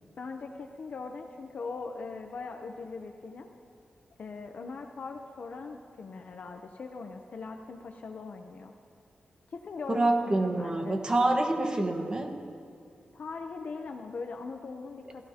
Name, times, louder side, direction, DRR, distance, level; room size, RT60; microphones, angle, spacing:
voice 1, 0.2-3.5 4.2-8.7 9.5-11.0 13.1-15.3, left 4 dB, 55° left, 4 dB, 0.7 m, -40 dB
voice 2, 9.9-12.3, right 2 dB, 25° right, 3 dB, 1.4 m, -26 dB
30.0 x 15.5 x 2.9 m, 2.5 s
wide cardioid pair, 160°, 3 cm